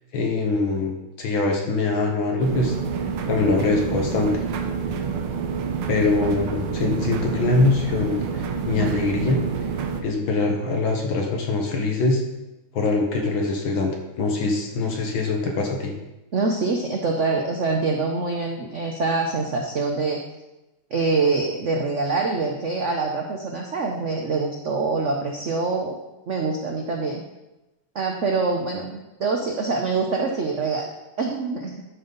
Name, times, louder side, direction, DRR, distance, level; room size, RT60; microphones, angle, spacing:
voice 1, 0.1-2.8 3.0-4.4 5.9-9.4 10.0-12.2 12.7-13.9 14.2-15.9, left 3 dB, 70° left, 2 dB, 1.9 m, -23 dB
sound 1, 2.4-10.0, right 6 dB, 80° right, 1.7 m, -28 dB
voice 2, 16.3-20.2 20.9-25.9 26.3-27.2 27.9-30.9 31.2-31.7, right 3 dB, 60° right, 2 dB, 0.8 m, -25 dB
12.0 x 5.5 x 3.9 m, 1.0 s
omnidirectional pair, 2.3 m